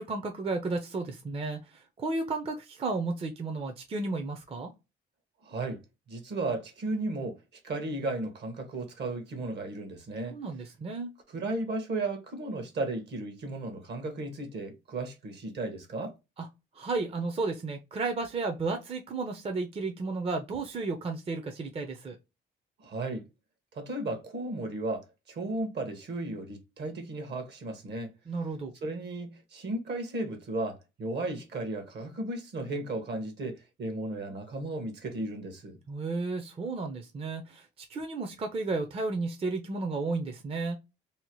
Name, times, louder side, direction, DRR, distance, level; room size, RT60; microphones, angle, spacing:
voice 1, 0.0-4.7 10.3-11.1 16.4-16.5 16.7-22.2 28.3-28.7 35.9-40.8, right 3 dB, 30° right, 0.5 m, -33 dB
voice 2, 5.4-5.8 6.1-7.4 7.6-10.4 11.3-16.1 22.8-23.3 23.7-28.1 28.8-35.8, right 2 dB, 60° right, 1.0 m, -35 dB
2.8 x 2.1 x 2.9 m
cardioid pair, 90°, 20 cm